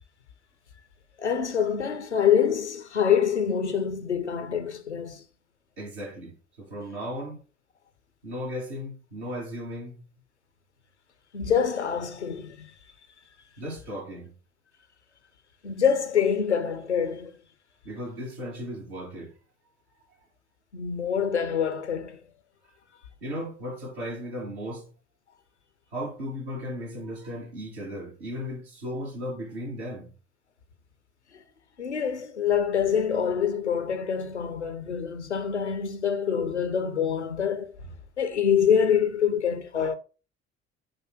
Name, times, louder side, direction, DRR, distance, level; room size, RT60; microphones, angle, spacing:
voice 1, 1.2-5.2 11.3-12.7 15.6-17.3 20.7-22.2 31.3-31.4 31.8-37.7 38.2-40.0, left 8 dB, 85° left, 0.6 m, -25 dB
voice 2, 5.8-7.4 8.2-10.0 13.6-14.3 17.8-19.3 23.2-24.9 25.9-30.1, equal, 70° right, 2.0 m, -36 dB
7.4 x 2.6 x 5.9 m
figure-of-eight pair, 50°, 34 cm